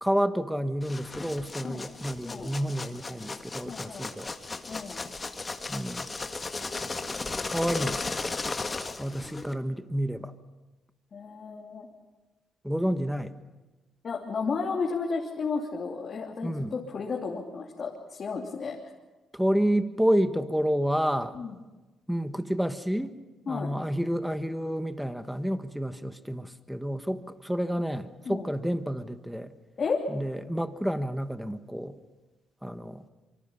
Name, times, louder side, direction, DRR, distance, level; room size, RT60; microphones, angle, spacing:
voice 1, 0.0-4.3 5.7-6.1 7.5-8.1 9.0-10.3 12.6-13.3 16.4-16.7 19.3-21.5 22.1-23.1 23.5-29.5 30.1-32.0 32.6-33.1, equal, ahead, 10 dB, 1.4 m, -29 dB
sound 1, 0.8-9.5, left 3 dB, 25° left, 1.7 m, -36 dB
voice 2, 2.2-2.5 3.7-4.1 4.7-5.0 11.1-11.9 14.0-18.8 21.3-21.6 23.5-23.7 28.2-28.5 29.8-30.0, left 5 dB, 45° left, -1 dB, 3.0 m, -33 dB
25.5 x 24.5 x 5.7 m, 1.2 s
cardioid pair, 90°, 0 cm